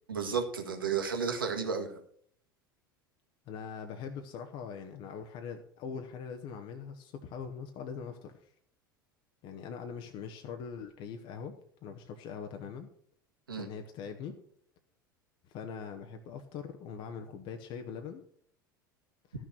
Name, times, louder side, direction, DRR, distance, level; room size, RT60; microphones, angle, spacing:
voice 1, 0.1-1.9 13.5-13.7, right 6 dB, 85° right, 4 dB, 1.7 m, -32 dB
voice 2, 3.5-8.5 9.4-11.5 11.8-12.9 13.6-14.3 15.4-18.2, left 6 dB, 50° left, 5 dB, 1.2 m, -42 dB
13.0 x 6.4 x 6.3 m, 0.63 s
hypercardioid pair, 75°, 11 cm